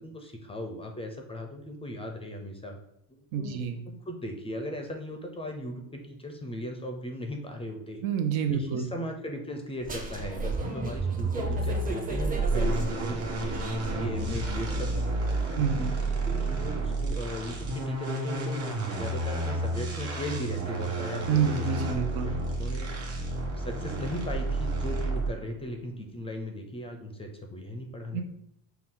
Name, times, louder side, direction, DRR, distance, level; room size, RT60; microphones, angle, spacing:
voice 1, 0.0-2.8 3.1-3.6 3.9-8.0 8.5-15.6 16.2-22.9 23.6-28.2, left 1 dB, 15° left, 3 dB, 0.4 m, -38 dB
voice 2, 3.3-3.8 8.0-8.9 15.6-15.9 21.3-22.3 28.1-28.2, right 7 dB, 80° right, 6 dB, 0.7 m, -28 dB
sound 1, 9.8-15.4, right 2 dB, 20° right, 0.7 m, -31 dB
sound 2, 12.5-25.5, right 2 dB, 40° right, 1.3 m, -31 dB
5.7 x 2.3 x 3.7 m, 0.78 s
cardioid pair, 140°, 38 cm